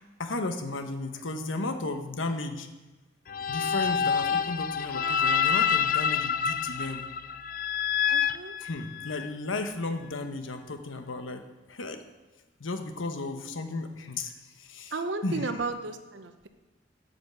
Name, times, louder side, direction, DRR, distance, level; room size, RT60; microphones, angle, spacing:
voice 1, 0.2-2.7 3.5-7.1 8.6-12.0 12.6-14.9 15.2-15.5, left 2 dB, 90° left, 7 dB, 1.1 m, -34 dB
sound 1, 3.3-9.3, left 7 dB, 45° left, 0.4 m, -27 dB
voice 2, 8.1-8.5 14.9-16.5, right 3 dB, 65° right, 9 dB, 0.8 m, -34 dB
8.2 x 7.0 x 7.0 m, 1.2 s
head